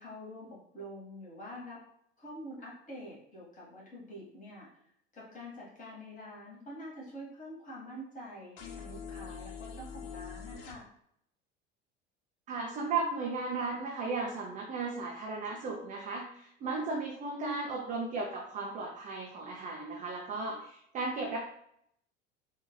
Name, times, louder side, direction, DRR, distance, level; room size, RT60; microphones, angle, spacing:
voice 1, 0.0-1.8 2.2-4.7 5.1-10.9, equal, 20° left, -5 dB, 1.4 m, -46 dB
sound 1, 8.6-10.8, left 6 dB, 40° left, 0.4 m, -44 dB
voice 2, 12.5-21.4, right 3 dB, 20° right, 0 dB, 0.4 m, -35 dB
3.8 x 2.3 x 2.2 m, 0.72 s
figure-of-eight pair, 70°, 36 cm